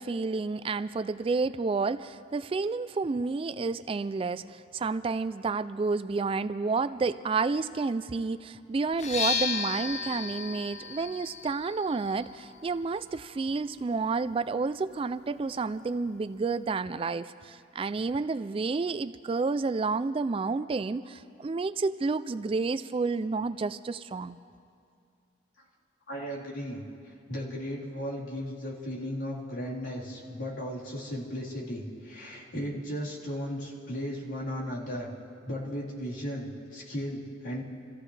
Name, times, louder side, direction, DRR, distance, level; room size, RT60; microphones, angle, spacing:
voice 1, 0.0-24.4, right 4 dB, 30° right, 13 dB, 0.3 m, -30 dB
sound 1, 8.9-16.7, left 5 dB, 35° left, 0.6 m, -37 dB
voice 2, 26.1-26.8 27.3-35.1 35.4-37.6, equal, 70° left, -7 dB, 3.9 m, -36 dB
27.5 x 15.0 x 3.3 m, 2.4 s
head